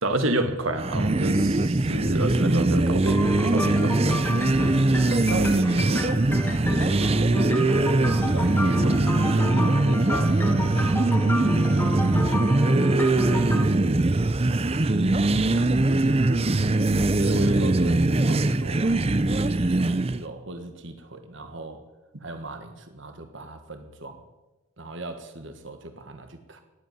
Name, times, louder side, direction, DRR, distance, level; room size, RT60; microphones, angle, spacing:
voice 1, 0.0-4.0 17.3-17.7, right 1 dB, 75° right, 7 dB, 1.6 m, -28 dB
sound 1, 0.7-20.2, right 2 dB, 30° right, 0.6 m, -22 dB
sound 2, 3.1-13.7, left 1 dB, 10° left, 1.5 m, -31 dB
voice 2, 4.3-5.0 5.3-6.1 6.7-8.1 8.3-11.7 12.3-12.6 12.9-14.0 14.7-15.1 15.4-16.6 17.1-21.8 22.2-24.2 24.8-26.6, right 2 dB, 60° right, 7 dB, 1.6 m, -38 dB
18.0 x 8.2 x 9.4 m, 1.1 s
head